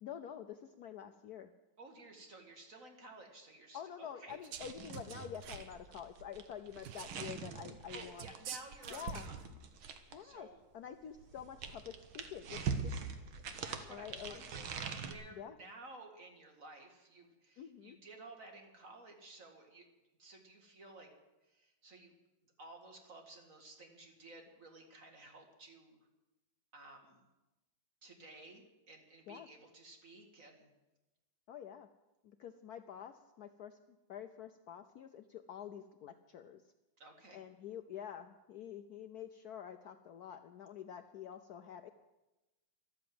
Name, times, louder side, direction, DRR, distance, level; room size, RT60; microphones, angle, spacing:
voice 1, 0.0-1.5 3.7-8.3 8.9-9.3 10.1-10.5 10.7-12.9 13.9-14.4 15.4-15.6 17.6-18.0 29.3-29.5 31.5-31.9 32.2-36.6 37.3-41.9, left 9 dB, 65° left, 8 dB, 1.0 m, -48 dB
voice 2, 1.8-4.4 7.9-9.3 9.8-10.6 13.5-19.9 20.2-21.1 21.4-22.1 22.6-26.0 26.7-27.2 28.0-30.7 37.0-37.4, right 2 dB, 40° right, 3 dB, 2.3 m, -55 dB
sound 1, 4.3-4.7 4.9-5.7 6.8-7.2 8.2-9.5, right 10 dB, 65° right, 1.4 m, -48 dB
sound 2, 4.5-10.3 11.2-15.1, right 5 dB, 90° right, 2.0 m, -43 dB
13.5 x 12.0 x 7.7 m, 1.0 s
omnidirectional pair, 2.2 m